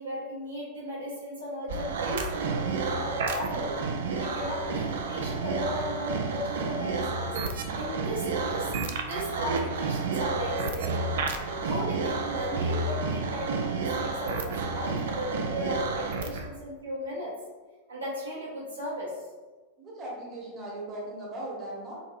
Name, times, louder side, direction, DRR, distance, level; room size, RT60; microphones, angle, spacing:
voice 1, 0.0-3.8 4.0-8.7 9.1-11.1 11.6-17.3 17.9-19.2, equal, 75° right, -7 dB, 1.2 m, -36 dB
sound 1, 1.7-16.5, right 4 dB, 60° right, 0.3 m, -30 dB
voice 2, 19.8-21.9, right 1 dB, 25° right, -5 dB, 1.1 m, -38 dB
3.9 x 2.7 x 2.5 m, 1.3 s
figure-of-eight pair, 90°, 0 cm